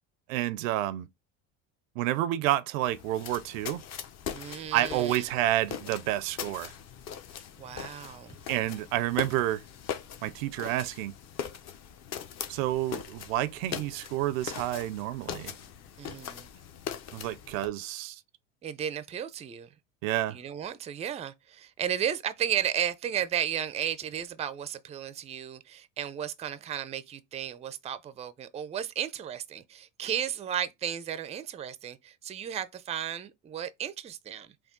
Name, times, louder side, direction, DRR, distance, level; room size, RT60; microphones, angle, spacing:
voice 1, 0.3-1.1 2.0-3.8 4.7-6.7 8.5-9.6 10.2-11.1 12.5-15.5 17.1-18.2 20.0-20.4, right 14 dB, 85° right, 0.5 m, -29 dB
sound 1, 2.8-17.7, left 8 dB, 45° left, 0.7 m, -41 dB
voice 2, 4.3-5.3 7.6-8.4 16.0-16.5 18.6-19.7 20.3-34.5, right 9 dB, 20° right, 0.4 m, -34 dB
3.5 x 2.3 x 3.7 m
supercardioid pair, 100°, 38 cm